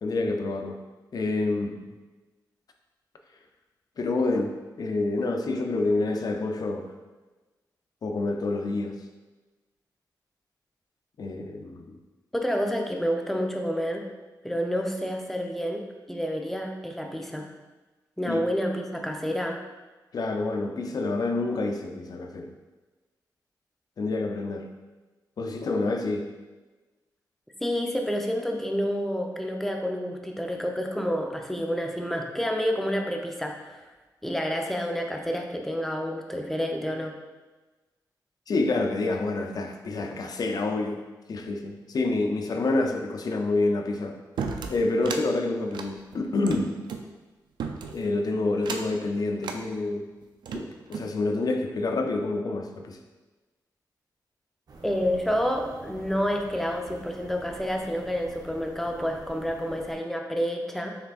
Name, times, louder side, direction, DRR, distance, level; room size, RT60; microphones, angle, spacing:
voice 1, 0.0-0.8 1.1-2.0 4.0-6.9 8.0-9.0 11.2-12.0 18.3-18.4 20.1-22.5 24.0-24.7 25.4-26.3 38.5-41.0 41.3-44.2 44.7-46.8 47.9-50.1 50.5-53.0, left 2 dB, 60° left, 4 dB, 0.5 m, -28 dB
voice 2, 12.3-14.1 14.4-17.5 18.2-19.6 27.6-33.8 34.2-37.2 54.8-61.0, equal, 5° left, 2 dB, 0.6 m, -29 dB
sound 1, 44.4-45.3 45.7-47.1 47.6-48.1 48.6-49.0 49.4-49.6 50.2-51.1, right 5 dB, 85° right, 0.4 m, -35 dB
sound 2, 54.7-59.9, right 2 dB, 60° right, 0.7 m, -46 dB
5.8 x 3.4 x 2.4 m, 1.2 s
cardioid pair, 75°, 7 cm